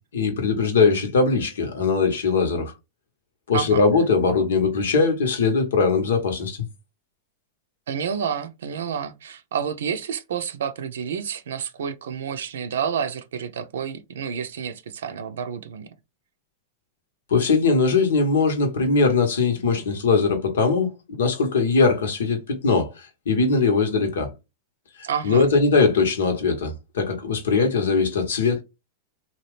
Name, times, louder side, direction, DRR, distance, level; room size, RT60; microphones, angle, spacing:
voice 1, 0.1-2.7 3.5-6.6 17.3-24.3 25.2-28.6, left 4 dB, 85° left, 1.0 m, -21 dB
voice 2, 7.9-15.9 25.0-25.5, right 7 dB, 80° right, 0.5 m, -29 dB
2.8 x 2.3 x 3.2 m
hypercardioid pair, 115°, 0 cm